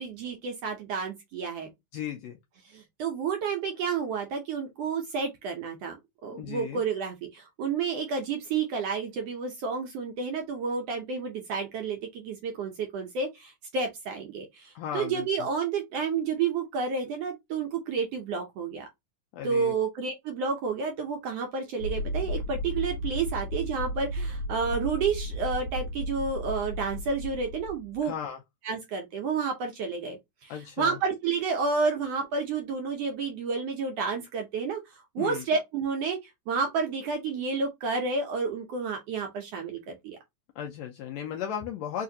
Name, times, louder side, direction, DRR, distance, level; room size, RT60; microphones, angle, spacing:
voice 1, 0.0-1.7 2.7-6.0 6.2-18.9 19.4-28.1 28.6-40.2, right 5 dB, 75° right, 1.5 m, -30 dB
voice 2, 1.9-2.4 6.3-6.8 14.7-15.5 19.3-19.8 28.0-28.4 30.5-31.0 35.2-35.4 40.6-42.0, left 9 dB, 80° left, 1.6 m, -36 dB
sound 1, 21.8-28.0, equal, 55° left, 2.0 m, -34 dB
4.7 x 2.5 x 2.7 m
omnidirectional pair, 3.5 m